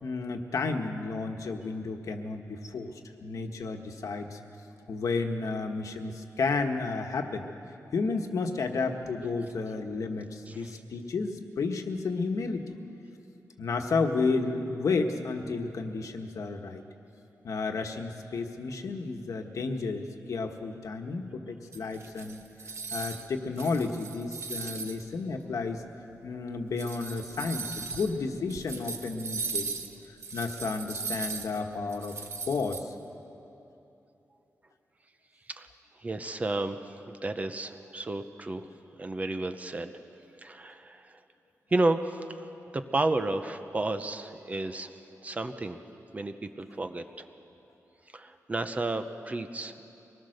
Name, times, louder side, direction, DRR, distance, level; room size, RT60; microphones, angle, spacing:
voice 1, 0.0-4.4 4.9-7.5 7.9-12.7 13.6-16.8 17.4-25.8 26.2-29.7 30.3-32.2 32.5-32.9, left 4 dB, 70° left, 4 dB, 1.4 m, -32 dB
sound 1, 21.7-23.3 23.6-25.0 25.7-25.8 26.6-32.8, right 4 dB, 55° right, 1.3 m, -38 dB
voice 2, 36.0-38.7 39.0-39.9 40.4-41.2 41.7-42.5 42.7-45.8 46.1-47.3 48.1-49.7, right 2 dB, 25° right, 8 dB, 0.8 m, -32 dB
24.0 x 20.0 x 6.6 m, 2.9 s
wide cardioid pair, 170°, 6 cm